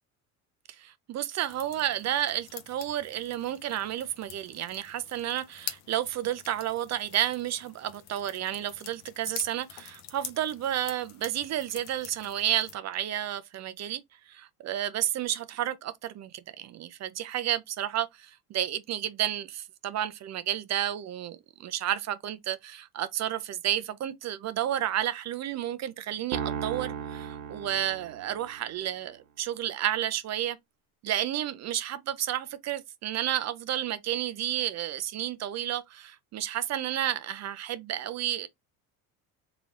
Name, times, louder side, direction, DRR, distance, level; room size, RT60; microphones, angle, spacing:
voice 1, 0.8-14.0 14.3-16.3 16.6-30.6 31.0-38.5, right 11 dB, 40° right, 0.4 m, -31 dB
sound 1, 1.5-12.8, left 10 dB, 70° left, 0.9 m, -46 dB
sound 2, 26.3-28.7, right 8 dB, 85° right, 1.0 m, -36 dB
3.9 x 3.1 x 2.4 m
hypercardioid pair, 75°, 44 cm